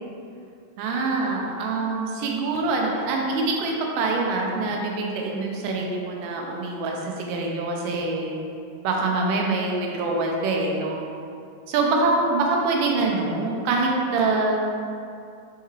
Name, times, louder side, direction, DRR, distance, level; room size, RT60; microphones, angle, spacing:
voice 1, 0.8-8.4 8.8-11.0 11.7-14.6, right 3 dB, 85° right, -1 dB, 2.1 m, -25 dB
5.5 x 2.4 x 3.1 m, 2.5 s
omnidirectional pair, 3.7 m